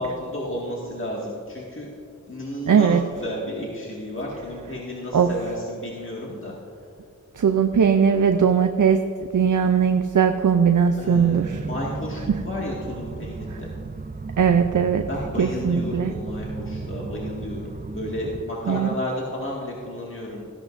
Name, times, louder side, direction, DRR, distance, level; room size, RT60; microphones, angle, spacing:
voice 1, 0.0-1.9 2.3-6.5 11.0-13.7 15.0-20.4, left 1 dB, 40° left, -4 dB, 1.9 m, -32 dB
voice 2, 2.7-3.0 5.1-5.3 7.4-9.0 9.3-11.6 14.4-15.1 15.4-16.1 18.7-18.9, right 7 dB, 75° right, 7 dB, 0.6 m, -19 dB
sound 1, 11.1-18.4, right 3 dB, 30° right, 0.6 m, -34 dB
16.0 x 11.0 x 2.6 m, 2.4 s
wide cardioid pair, 45°, 32 cm